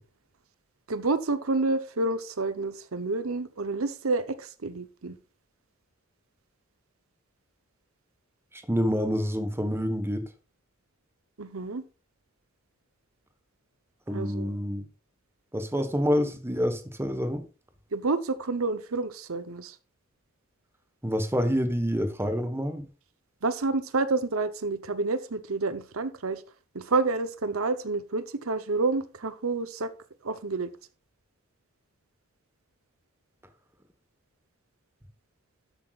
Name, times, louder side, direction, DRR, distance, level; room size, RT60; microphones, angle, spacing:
voice 1, 0.9-5.2 11.4-11.8 14.1-14.5 17.9-19.7 23.4-26.4 26.7-29.9 30.2-30.7, right 3 dB, 75° right, 0.9 m, -29 dB
voice 2, 8.5-10.2 14.1-14.8 15.5-17.4 21.0-22.8, equal, 10° right, 1.3 m, -27 dB
12.5 x 8.3 x 2.5 m
head